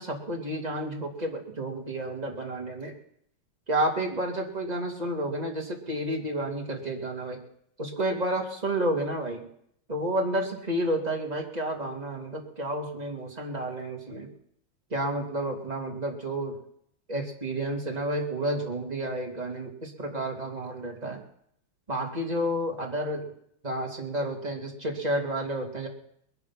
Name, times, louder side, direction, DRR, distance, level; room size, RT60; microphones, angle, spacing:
voice 1, 0.0-3.0 3.7-7.4 7.8-9.5 9.9-14.3 14.9-16.6 17.1-21.2 21.9-23.3 23.6-25.9, right 1 dB, 20° right, 1 dB, 2.4 m, -30 dB
21.0 x 10.5 x 5.8 m, 0.71 s
omnidirectional pair, 2.3 m